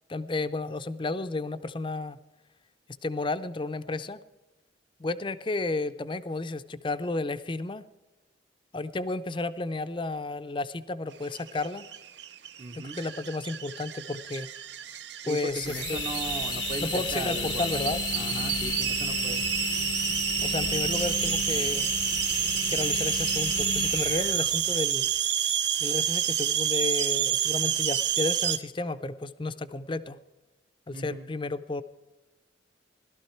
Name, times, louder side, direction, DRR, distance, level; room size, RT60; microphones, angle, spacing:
voice 1, 0.1-2.2 3.0-4.2 5.0-7.9 8.7-11.9 12.7-14.5 15.2-16.0 16.8-18.0 20.4-21.9 22.7-25.1 25.8-30.2 30.9-31.8, left 2 dB, 25° left, 13 dB, 0.5 m, -32 dB
sound 1, 11.2-28.6, right 10 dB, 65° right, 0.7 m, -29 dB
voice 2, 12.6-13.0 15.3-17.5 17.7-17.8 18.1-19.4 30.9-31.2, right 2 dB, 30° right, 3 dB, 0.7 m, -37 dB
sound 2, 15.6-25.0, left 7 dB, 85° left, 0.8 m, -33 dB
17.0 x 12.0 x 4.4 m, 1.2 s
head